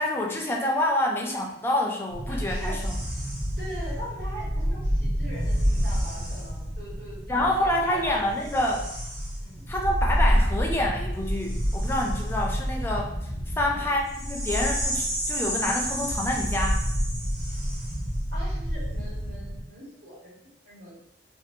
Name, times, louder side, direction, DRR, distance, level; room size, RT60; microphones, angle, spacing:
voice 1, 0.0-2.9 7.3-8.9 9.7-14.0 14.3-16.8, left 1 dB, 15° left, 0 dB, 0.3 m, -27 dB
sound 1, 2.1-19.7, equal, 50° right, 0.8 m, -28 dB
voice 2, 2.3-2.8 3.6-8.3 9.4-9.7 13.6-13.9 18.3-21.0, right 1 dB, 65° right, -8 dB, 1.4 m, -42 dB
2.7 x 2.3 x 2.6 m, 0.79 s
head